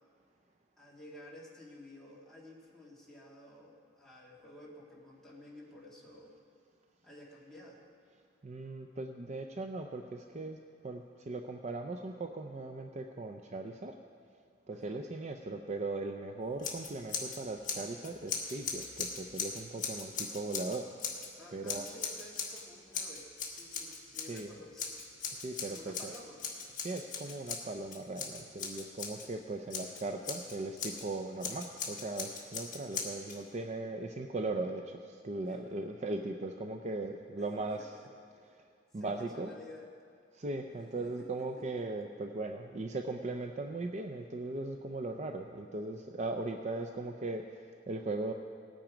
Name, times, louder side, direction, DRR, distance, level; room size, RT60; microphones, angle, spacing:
voice 1, 0.8-6.3 7.0-7.8 14.7-15.1 21.4-25.0 25.7-26.4 35.4-35.8 37.4-37.9 38.9-39.9 41.0-41.3 41.6-42.1, left 1 dB, ahead, -5 dB, 2.1 m, -53 dB
voice 2, 8.4-14.0 14.7-20.9 21.5-21.9 24.3-24.5 25.3-26.1 26.8-37.9 38.6-38.7 38.9-39.5 40.3-48.3, right 2 dB, 35° right, 5 dB, 0.5 m, -38 dB
Scissors, 16.6-17.4 17.6-21.3 21.7-22.6 22.9-24.4 24.8-29.3 29.7-31.0 31.4-33.4, left 5 dB, 40° left, 1.6 m, -39 dB
18.0 x 8.9 x 5.0 m, 2.2 s
head